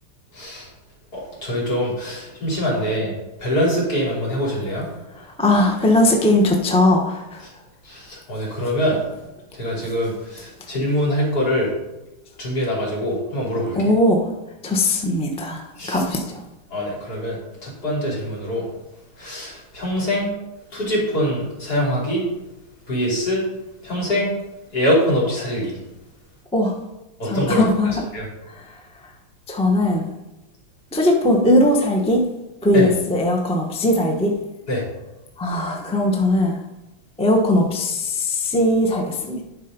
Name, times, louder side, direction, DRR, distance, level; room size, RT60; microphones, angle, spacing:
voice 1, 0.3-0.7 1.1-3.1 3.4-4.9 7.9-9.0 9.5-11.7 12.4-13.9 15.8-16.0 16.7-17.4 17.6-18.7 19.2-20.3 20.7-22.2 22.9-23.4 23.8-24.3 24.7-25.8 27.2-27.6 28.1-28.3 32.7-32.9 34.7-34.8, equal, 45° left, -5 dB, 3.8 m, -23 dB
voice 2, 5.1-7.4 13.7-14.3 14.6-16.4 26.5-26.8 27.2-28.0 28.5-29.1 29.5-30.1 30.9-32.3 32.6-34.3 35.4-36.6 37.2-39.4, left 1 dB, 5° left, 1 dB, 0.5 m, -19 dB
11.5 x 4.8 x 5.3 m, 1.0 s
omnidirectional pair, 2.3 m